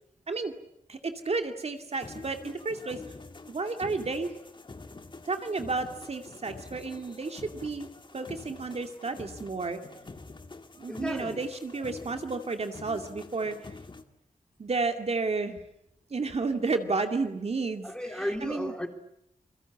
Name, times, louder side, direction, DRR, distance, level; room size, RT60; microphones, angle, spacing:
voice 1, 0.9-3.0 3.5-4.3 5.3-7.9 8.1-9.8 10.8-13.6 14.6-15.6 16.1-18.7, right 3 dB, 45° right, 2.4 m, -32 dB
sound 1, 1.9-14.0, left 3 dB, 35° left, 2.0 m, -46 dB
voice 2, 10.9-11.4 17.8-18.9, left 1 dB, 5° left, 3.2 m, -34 dB
28.5 x 23.0 x 8.6 m
wide cardioid pair, 150°, 14 cm